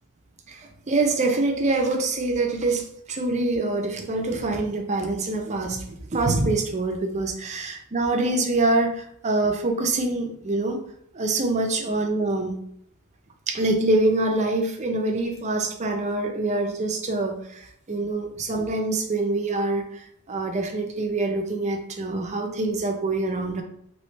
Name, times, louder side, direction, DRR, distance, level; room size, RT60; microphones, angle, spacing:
voice 1, 0.9-10.8 11.1-12.5 13.5-17.4 17.9-19.8 20.3-23.6, right 2 dB, 30° right, 3 dB, 0.5 m, -25 dB
3.2 x 3.0 x 3.1 m, 0.71 s
head